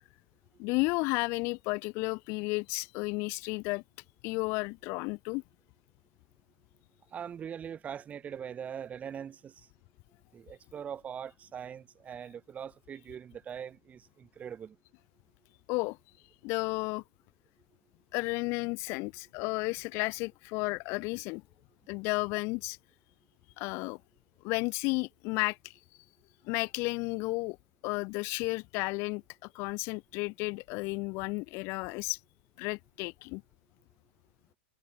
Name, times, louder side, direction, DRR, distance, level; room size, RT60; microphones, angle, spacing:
voice 1, 0.6-3.8 4.2-5.4 15.7-16.0 16.4-17.0 18.1-21.4 21.9-22.8 23.6-24.0 24.4-25.8 26.4-27.6 27.8-29.2 29.5-32.2 32.6-33.4, left 27 dB, 45° left, 2.0 m, -32 dB
voice 2, 7.1-9.7 10.3-14.8, right 8 dB, 25° right, 7.0 m, -42 dB
figure-of-eight pair, 100°, 6 cm